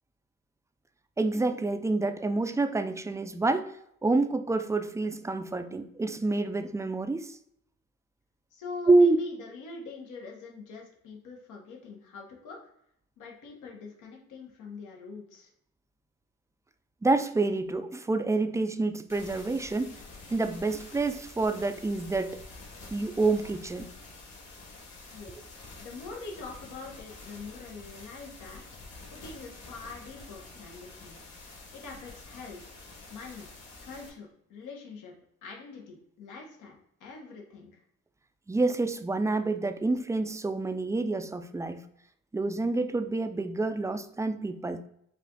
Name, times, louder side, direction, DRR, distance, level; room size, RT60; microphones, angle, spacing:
voice 1, 1.2-3.7 4.0-7.4 8.9-9.2 17.0-20.0 20.3-22.4 22.9-23.9 38.5-41.8 42.3-44.9, right 3 dB, 10° right, 9 dB, 0.3 m, -27 dB
voice 2, 8.5-12.6 13.2-15.5 25.1-25.5 25.8-28.6 29.1-31.2 31.7-32.6 33.1-33.5 33.8-35.1 35.4-37.8, left 4 dB, 85° left, 0 dB, 1.2 m, -44 dB
sound 1, 19.1-34.1, left 3 dB, 55° left, 1.8 m, -48 dB
5.5 x 2.5 x 3.8 m, 0.72 s
cardioid pair, 90°, 30 cm